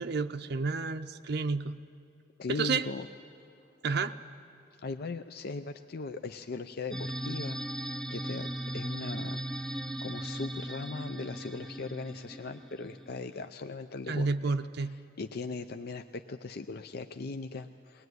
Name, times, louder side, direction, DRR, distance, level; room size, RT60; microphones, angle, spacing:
voice 1, 0.0-1.8 2.5-2.9 3.8-4.2 14.1-14.9, right 4 dB, 60° right, 7 dB, 0.5 m, -30 dB
voice 2, 2.4-3.1 4.8-14.5 14.8-18.1, left 3 dB, 55° left, 8 dB, 0.5 m, -39 dB
sound 1, 6.9-13.5, right 1 dB, 5° left, 0.7 m, -38 dB
21.5 x 20.0 x 9.4 m, 2.5 s
head